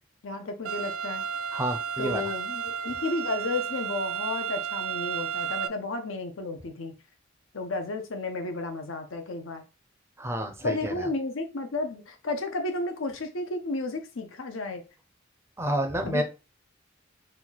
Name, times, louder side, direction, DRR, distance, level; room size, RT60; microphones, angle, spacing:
voice 1, 0.2-1.3 2.0-7.0 7.5-9.6 10.6-14.8 16.0-16.2, left 2 dB, 70° left, 0.7 m, -32 dB
sound 1, 0.6-5.7, right 7 dB, 80° right, 0.4 m, -32 dB
voice 2, 1.5-2.3 10.2-11.1 15.6-16.2, right 1 dB, 15° right, 0.6 m, -29 dB
4.4 x 2.3 x 4.0 m
head